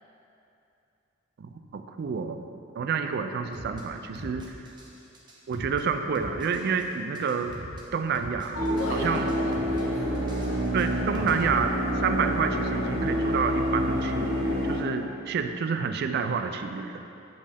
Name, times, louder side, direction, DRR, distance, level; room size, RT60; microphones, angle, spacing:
voice 1, 1.4-2.5 2.8-4.4 5.5-7.6 7.9-8.6 8.9-9.2 10.7-14.3 14.6-17.0, right 5 dB, 50° right, 7 dB, 0.3 m, -28 dB
sound 1, 3.5-3.8 4.1-4.9 5.1-5.8 6.1-6.8 7.1-7.8 8.1-8.9 9.1-9.8 10.1-11.5, right 1 dB, 20° right, 0.7 m, -41 dB
voice 2, 8.5-10.6, equal, 85° left, -4 dB, 1.2 m, -35 dB
sound 2, 8.5-14.8, equal, 85° right, 1.3 m, -28 dB
6.4 x 5.3 x 3.4 m, 2.8 s
head